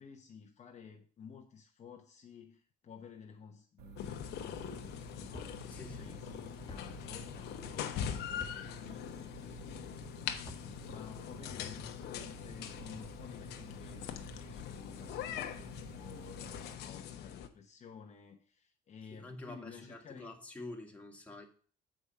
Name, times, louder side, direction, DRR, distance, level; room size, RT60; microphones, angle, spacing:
voice 1, 0.0-5.6 6.0-20.3, left 6 dB, 40° left, 0.9 m, -53 dB
sound 1, 3.8-16.8, right 11 dB, 75° right, 0.7 m, -54 dB
sound 2, 4.0-17.5, left 9 dB, 80° left, 0.9 m, -42 dB
sound 3, 5.3-5.5 6.7-6.8 8.3-8.6 10.3-10.7, left 2 dB, 25° left, 1.3 m, -48 dB
voice 2, 5.7-6.1 19.1-21.5, left 2 dB, 10° left, 1.7 m, -47 dB
7.6 x 4.9 x 5.5 m
cardioid pair, 110°, 17 cm